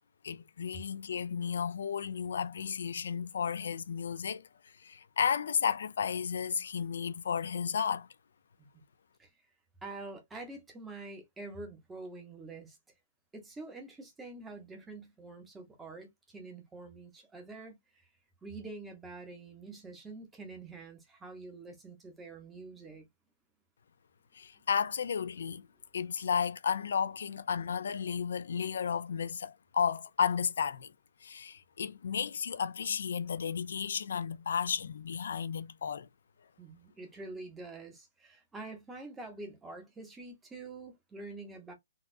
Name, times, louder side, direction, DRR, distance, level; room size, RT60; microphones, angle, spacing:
voice 1, 0.2-8.1 24.3-25.7 25.9-30.9 31.2-36.1, left 7 dB, 65° left, 0.4 m, -33 dB
voice 2, 9.8-12.8 13.3-18.1 18.4-23.1 36.6-41.7, right 3 dB, 5° right, 0.9 m, -46 dB
4.0 x 2.4 x 2.6 m
hypercardioid pair, 165°, 0 cm